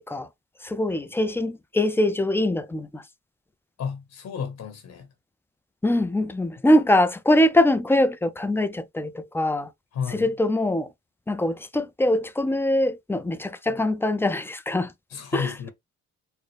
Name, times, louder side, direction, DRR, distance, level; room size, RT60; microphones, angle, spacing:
voice 1, 0.6-3.0 5.8-9.7 10.1-10.9 11.3-14.9 15.3-15.5, left 1 dB, 10° left, 0.4 m, -23 dB
voice 2, 3.8-5.1 9.9-10.3 15.1-15.7, left 6 dB, 60° left, 1.2 m, -32 dB
4.1 x 2.1 x 3.2 m
cardioid pair, 90°, 30 cm